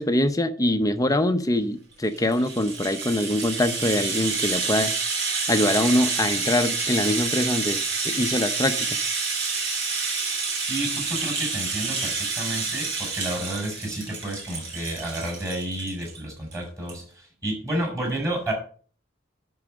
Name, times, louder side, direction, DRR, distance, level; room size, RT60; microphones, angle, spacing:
voice 1, 0.0-4.9 5.5-9.0, left 1 dB, 15° left, 9 dB, 0.8 m, -24 dB
Rattle (instrument), 2.0-16.2 16.5-16.6 16.9-17.0, right 4 dB, 55° right, 3.8 m, -28 dB
voice 2, 10.6-17.0 17.4-18.5, right 1 dB, 15° right, 0 dB, 4.6 m, -30 dB
11.5 x 4.8 x 6.3 m, 0.43 s
head